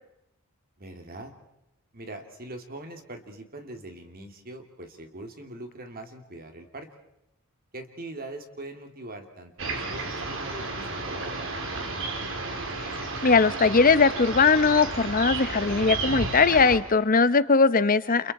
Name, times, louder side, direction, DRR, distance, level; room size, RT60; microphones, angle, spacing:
voice 1, 0.8-1.3 1.9-6.9 7.7-11.7, right 2 dB, 45° right, 5 dB, 2.7 m, -42 dB
sound 1, 9.6-16.8, right 3 dB, 65° right, 3.1 m, -32 dB
voice 2, 13.2-18.3, left 4 dB, 40° left, 15 dB, 0.8 m, -20 dB
30.0 x 28.5 x 4.3 m, 0.86 s
head